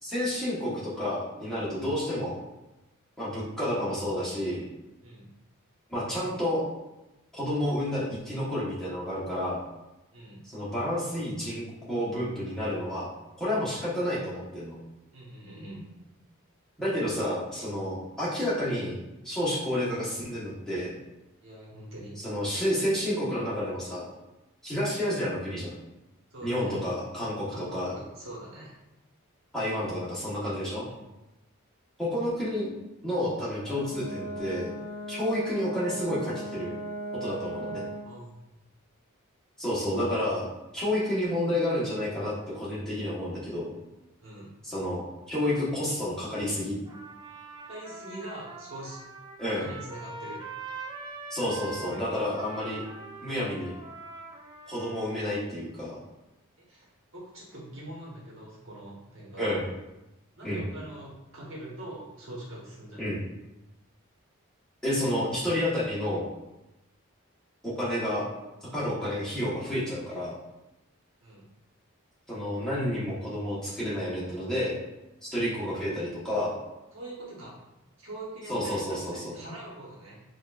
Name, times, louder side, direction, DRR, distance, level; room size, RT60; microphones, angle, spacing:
voice 1, 0.0-2.3 3.2-4.6 5.9-6.6 7.3-9.6 10.4-13.1 13.4-14.8 16.8-19.0 19.2-20.9 22.2-24.1 24.6-25.7 26.4-27.9 29.5-30.9 32.0-32.7 33.0-34.7 35.1-36.7 37.2-37.8 39.6-40.5 40.7-43.7 44.6-46.8 49.4-49.7 51.3-52.8 53.2-53.7 54.7-56.0 59.4-59.7 60.4-60.6 63.0-63.2 64.8-66.2 67.6-68.3 68.6-70.3 72.3-74.7 75.2-76.6 78.5-79.3, left 1 dB, 5° left, -9 dB, 1.1 m, -30 dB
voice 2, 15.1-15.8 21.4-22.2 26.3-26.8 27.5-28.7 30.8-31.0 38.0-38.4 44.2-44.5 47.7-49.0 49.5-50.4 51.6-52.2 56.7-56.9 57.1-59.4 60.4-63.1 71.2-71.5 76.9-77.6 78.0-80.2, right 1 dB, 60° right, -5 dB, 1.2 m, -43 dB
Brass instrument, 33.6-38.1, right 1 dB, 75° left, 0.6 m, -37 dB
Trumpet, 46.9-55.3, right 3 dB, 20° right, 0.4 m, -43 dB
6.3 x 2.5 x 2.4 m, 0.95 s
head